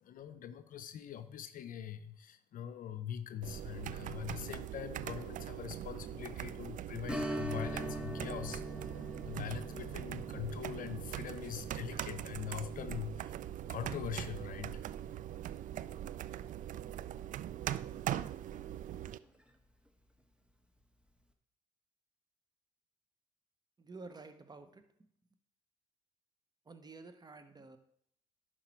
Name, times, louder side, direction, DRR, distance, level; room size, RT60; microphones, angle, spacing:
voice 1, 0.0-13.4 13.7-14.9, left 9 dB, 55° left, 10 dB, 0.6 m, -43 dB
sound 1, 3.4-19.2, right 12 dB, 50° right, 0.4 m, -41 dB
Strum, 7.1-16.3 16.6-16.7 19.2-19.4 19.9-20.0, equal, 5° right, 1.2 m, -45 dB
voice 2, 23.8-24.8 26.6-27.8, right 3 dB, 25° right, 9 dB, 1.1 m, -51 dB
11.0 x 4.5 x 4.6 m, 0.69 s
hypercardioid pair, 55°, 17 cm